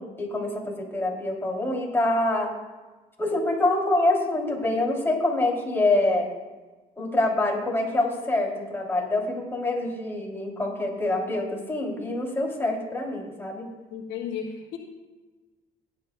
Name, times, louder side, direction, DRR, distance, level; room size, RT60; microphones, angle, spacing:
voice 1, 0.0-2.5 3.2-6.3 7.0-13.7, left 2 dB, 15° left, -1 dB, 2.9 m, -26 dB
voice 2, 13.9-14.8, left 7 dB, 90° left, -1 dB, 1.6 m, -34 dB
17.0 x 10.5 x 2.2 m, 1.2 s
cardioid pair, 110°, 17 cm